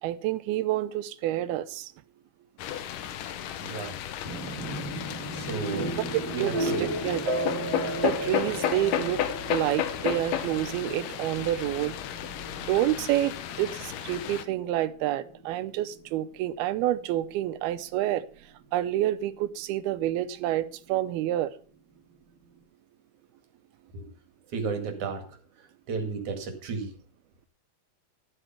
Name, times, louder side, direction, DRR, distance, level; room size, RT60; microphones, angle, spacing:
voice 1, 0.0-1.9 5.9-6.1 6.4-7.2 8.0-9.2 9.5-11.9 12.6-18.2 18.7-21.5, right 13 dB, 85° right, 2.7 m, -28 dB
sound 1, 2.6-14.4, left 10 dB, 70° left, 2.2 m, -33 dB
voice 2, 3.6-4.0 5.3-6.0 6.3-6.9 23.9-24.1 24.5-26.9, right 4 dB, 55° right, 3.1 m, -33 dB
sound 2, 4.3-18.0, right 1 dB, 30° right, 3.6 m, -36 dB
12.5 x 8.1 x 5.9 m
omnidirectional pair, 4.4 m